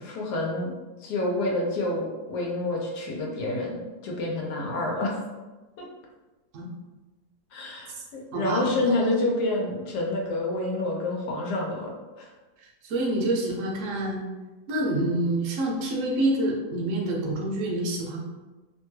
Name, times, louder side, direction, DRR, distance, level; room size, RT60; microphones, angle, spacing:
voice 1, 0.0-0.7 1.0-5.1 7.5-11.9 12.2-12.3, left 2 dB, 90° left, -2 dB, 1.2 m, -28 dB
voice 2, 8.3-8.7 12.9-14.2 14.7-18.2, right 1 dB, 60° right, -1 dB, 0.8 m, -27 dB
2.8 x 2.2 x 3.1 m, 1.2 s
omnidirectional pair, 1.7 m